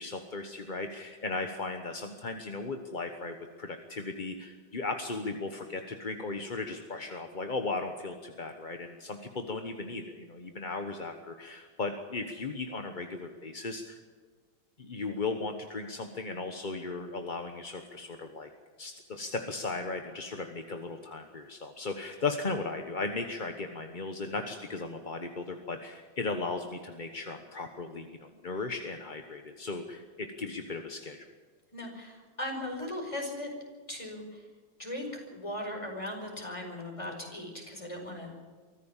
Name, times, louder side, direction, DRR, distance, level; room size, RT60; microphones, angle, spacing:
voice 1, 0.0-14.0 14.8-18.5 18.8-31.2, left 3 dB, 30° left, 5 dB, 1.0 m, -36 dB
voice 2, 31.7-33.5 33.9-34.5 34.8-38.4, left 1 dB, 15° left, 2 dB, 5.3 m, -38 dB
24.0 x 15.0 x 7.4 m, 1.5 s
omnidirectional pair, 2.2 m